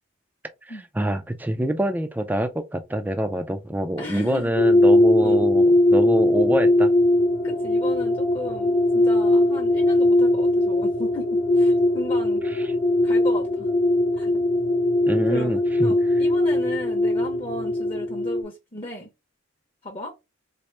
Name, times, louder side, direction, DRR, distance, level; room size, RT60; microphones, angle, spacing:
voice 1, 1.0-6.9 15.1-15.9, right 1 dB, 10° right, 0.3 m, -25 dB
voice 2, 4.0-4.5 5.2-5.5 7.4-12.5 13.0-13.7 14.1-14.3 15.3-19.1 19.8-20.1, left 1 dB, 30° left, 0.7 m, -35 dB
sound 1, 4.5-18.4, left 1 dB, 55° left, 0.9 m, -20 dB
4.2 x 2.0 x 3.2 m
head